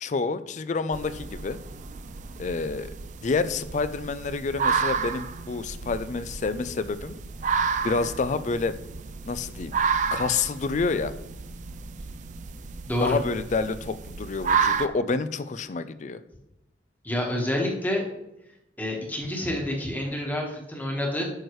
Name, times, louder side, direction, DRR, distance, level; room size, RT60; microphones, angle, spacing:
voice 1, 0.0-1.6 2.4-2.9 3.2-7.1 7.8-8.8 9.3-9.7 10.1-11.1 13.0-16.2, left 4 dB, 40° left, 13 dB, 0.4 m, -28 dB
sound 1, 0.9-14.9, right 6 dB, 45° right, 0.4 m, -31 dB
voice 2, 12.9-13.2 17.0-18.0 18.8-21.2, left 1 dB, 10° left, 0 dB, 1.3 m, -28 dB
9.4 x 6.3 x 3.1 m, 0.89 s
head